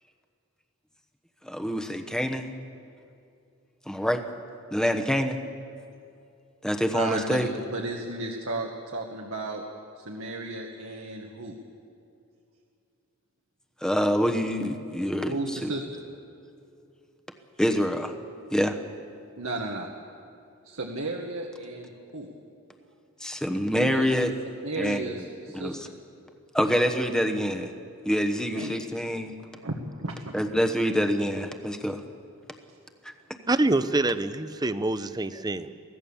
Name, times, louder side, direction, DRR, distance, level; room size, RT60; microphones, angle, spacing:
voice 1, 1.4-2.5 3.9-4.2 4.7-5.4 6.6-7.5 13.8-15.4 15.6-15.7 17.6-18.1 18.5-18.8 23.2-24.3 24.8-25.0 25.5-25.8 26.5-27.7 28.0-29.3 30.3-32.0 33.0-33.1, equal, 5° left, 1.0 m, -26 dB
voice 2, 6.9-9.6 10.0-11.5 15.2-16.0 19.4-19.9 20.6-22.3 23.7-24.1 24.6-26.0 28.5-28.7 29.5-30.3, right 2 dB, 80° right, 1.5 m, -34 dB
voice 3, 33.5-35.7, right 2 dB, 20° right, 0.6 m, -26 dB
23.5 x 16.0 x 7.1 m
head